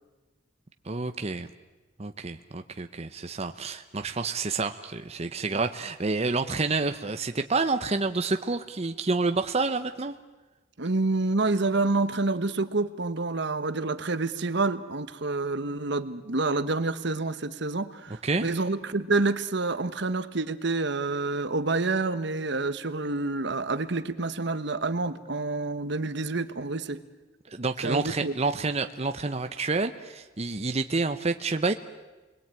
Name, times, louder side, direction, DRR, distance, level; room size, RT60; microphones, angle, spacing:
voice 1, 0.8-1.5 2.0-10.1 18.2-18.5 27.5-31.7, right 3 dB, 35° right, 7 dB, 0.9 m, -28 dB
voice 2, 10.8-27.0 27.8-28.3, right 3 dB, 65° right, 12 dB, 1.2 m, -28 dB
30.0 x 21.5 x 9.0 m, 1.2 s
head